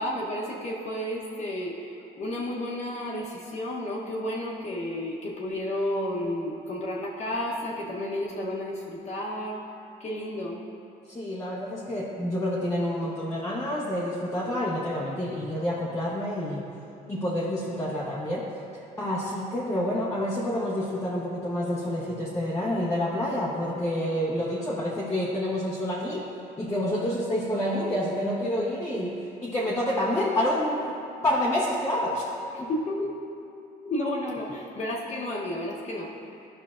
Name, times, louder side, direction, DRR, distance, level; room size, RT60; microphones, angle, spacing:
voice 1, 0.0-9.6 10.0-10.6 32.5-33.2 33.8-36.1, left 1 dB, 40° left, -4 dB, 1.0 m, -32 dB
voice 2, 11.1-16.6 17.1-18.5 19.0-26.3 26.6-29.2 29.4-30.9 31.2-32.7, left 1 dB, 15° left, -6 dB, 0.9 m, -28 dB
11.5 x 5.5 x 2.5 m, 2.7 s
cardioid pair, 110°, 17 cm